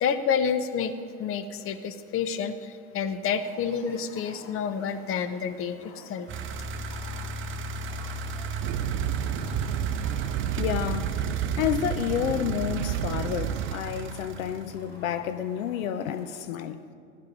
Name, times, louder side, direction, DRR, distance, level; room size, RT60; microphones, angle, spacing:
voice 1, 0.0-0.9 1.2-6.3, left 7 dB, 30° left, 0.9 m, -29 dB
sound 1, 3.2-16.4, left 1 dB, 55° left, 3.8 m, -50 dB
sound 2, 6.3-14.9, right 3 dB, 30° right, 0.9 m, -34 dB
sound 3, 8.6-13.7, right 12 dB, 65° right, 0.5 m, -31 dB
voice 2, 10.6-11.1 11.6-16.9, left 9 dB, 70° left, 0.8 m, -30 dB
14.5 x 12.0 x 5.2 m
hypercardioid pair, 90°, 42 cm